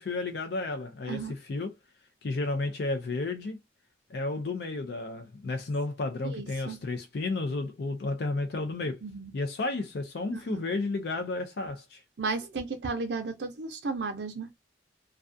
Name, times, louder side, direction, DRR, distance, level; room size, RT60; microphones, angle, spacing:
voice 1, 0.0-1.7 2.2-3.6 4.1-9.0 9.3-12.0, left 3 dB, 65° left, 0.4 m, -32 dB
voice 2, 6.2-6.8 9.0-9.3 10.3-10.6 12.2-14.5, right 4 dB, 70° right, 0.5 m, -34 dB
2.3 x 2.3 x 2.5 m
head